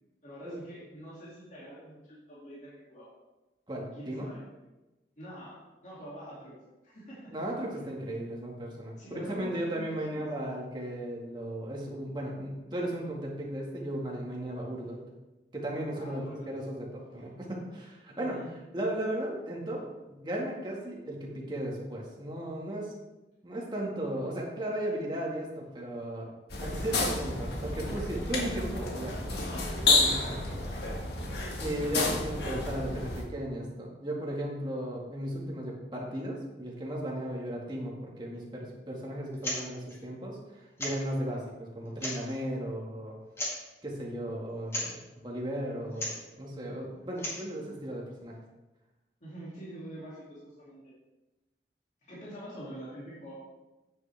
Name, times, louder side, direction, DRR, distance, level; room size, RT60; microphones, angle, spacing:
voice 1, 0.2-3.1 3.9-4.4 5.2-6.5 6.8-7.3 9.0-10.5 15.9-16.5 18.1-18.5 26.5-26.9 28.3-29.5 30.3-30.7 49.2-50.8 52.1-53.3, equal, 40° left, -7 dB, 2.5 m, -46 dB
voice 2, 3.7-4.3 7.3-15.0 15.5-18.4 18.7-19.8 20.1-22.9 23.4-26.3 26.6-29.4 30.0-30.4 31.6-43.2 43.8-48.4, right 1 dB, 25° right, -2 dB, 1.8 m, -36 dB
sound 1, 26.5-33.2, left 3 dB, 70° left, 1.6 m, -30 dB
sound 2, 39.3-39.6 39.9-40.0 40.8-41.1 41.9-42.4 43.3-43.7 44.7-44.9 45.9-46.2 47.0-47.5, left 1 dB, 15° left, 1.8 m, -35 dB
9.2 x 8.4 x 3.4 m, 1.1 s
head